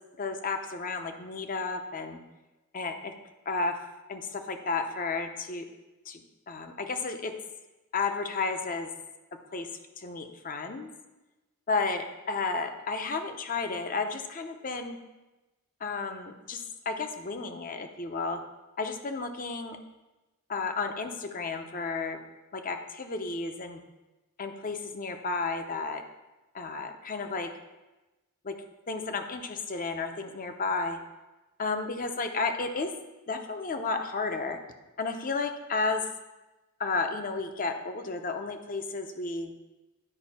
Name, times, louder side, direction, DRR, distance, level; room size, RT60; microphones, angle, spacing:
voice 1, 0.2-2.2 2.7-3.1 3.5-3.8 4.1-5.7 6.1-7.3 7.9-8.9 9.5-9.7 10.0-10.9 11.7-15.0 15.8-18.4 18.8-19.8 20.5-22.2 22.5-23.8 24.4-26.0 26.5-27.5 28.4-28.5 28.9-31.0 31.6-32.9 33.3-34.6 35.0-36.1 36.8-39.5, left 4 dB, 40° left, 6 dB, 0.7 m, -32 dB
11.0 x 5.3 x 4.2 m, 1.1 s
head